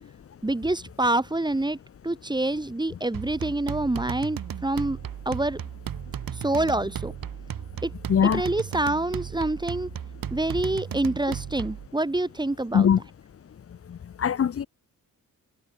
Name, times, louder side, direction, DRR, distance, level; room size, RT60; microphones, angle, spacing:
voice 1, 0.4-1.8 2.0-5.0 5.3-5.6 6.3-7.1 7.8-7.9 8.2-9.9 10.3-12.9, right 2 dB, 10° right, 5.5 m, -26 dB
sound 1, 3.1-11.9, right 9 dB, 80° right, 4.2 m, -35 dB
voice 2, 8.1-8.4 12.7-13.0 13.9-14.7, left 8 dB, 40° left, 0.8 m, -21 dB
wide cardioid pair, 150°, 34 cm